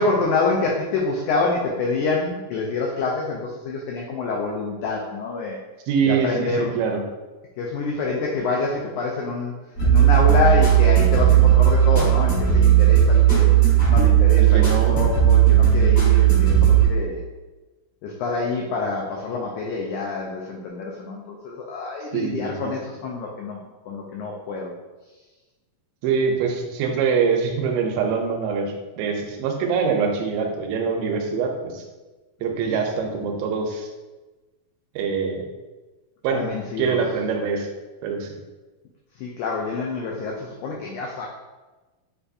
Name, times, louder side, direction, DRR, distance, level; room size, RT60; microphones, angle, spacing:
voice 1, 0.0-5.6 6.1-6.7 7.6-9.6 9.8-13.5 13.9-17.2 18.0-23.6 23.9-24.7 32.7-32.8 36.3-37.0 39.2-41.3, left 3 dB, 85° left, -1 dB, 1.7 m, -26 dB
voice 2, 5.9-7.0 14.4-15.0 22.1-22.7 26.0-31.8 32.4-33.9 35.0-35.5 36.2-36.4 36.8-37.7 38.0-38.3, right 5 dB, 90° right, 2 dB, 2.3 m, -24 dB
sound 1, 9.8-16.9, right 10 dB, 65° left, 0.9 m, -15 dB
6.7 x 2.6 x 2.5 m, 1.2 s
omnidirectional pair, 4.1 m